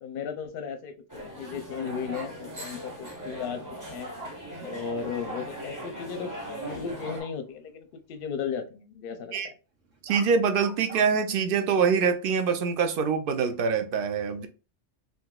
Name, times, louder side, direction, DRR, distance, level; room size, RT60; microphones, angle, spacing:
voice 1, 0.0-4.1 4.6-6.3 6.6-9.6, left 6 dB, 60° left, 0.6 m, -35 dB
sound 1, 1.1-7.2, right 1 dB, 15° right, 0.8 m, -39 dB
Bark, 2.1-2.3 4.2-4.3 5.2-5.4 5.7-5.9 7.1-7.3 9.8-11.0, right 2 dB, 80° right, 1.5 m, -41 dB
voice 2, 10.0-14.5, right 6 dB, 60° right, 0.6 m, -25 dB
3.7 x 2.7 x 2.3 m
omnidirectional pair, 1.3 m